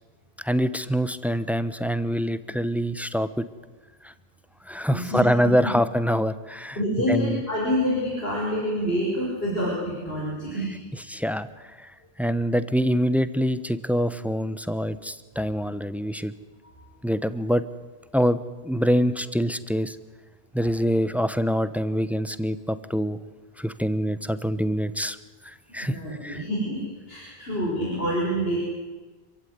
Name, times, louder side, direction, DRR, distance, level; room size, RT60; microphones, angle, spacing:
voice 1, 0.4-3.4 4.7-6.8 7.1-7.4 11.1-11.5 12.2-16.3 17.0-17.6 18.1-18.4 18.6-20.0 20.5-23.2 23.6-25.2 25.7-26.0 26.2-26.4, equal, ahead, 13 dB, 0.9 m, -25 dB
voice 2, 4.9-5.2 6.8-10.8 16.6-16.8 25.8-26.8 27.1-28.6, equal, 70° left, -5 dB, 5.9 m, -27 dB
26.5 x 15.5 x 9.6 m, 1.3 s
omnidirectional pair, 1.0 m